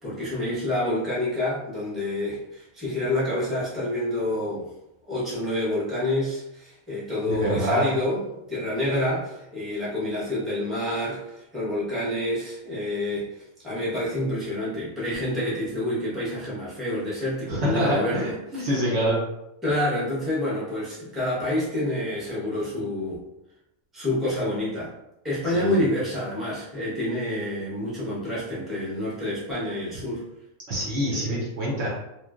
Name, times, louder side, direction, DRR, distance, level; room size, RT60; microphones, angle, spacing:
voice 1, 0.0-4.7 5.1-8.2 8.5-18.7 19.6-23.2 23.9-24.9 25.2-30.3 31.1-31.5, left 1 dB, ahead, -9 dB, 0.9 m, -28 dB
voice 2, 7.3-7.9 17.5-19.2 25.5-25.7 30.7-31.9, equal, 60° right, -5 dB, 1.0 m, -25 dB
3.0 x 2.4 x 2.4 m, 0.88 s
omnidirectional pair, 1.4 m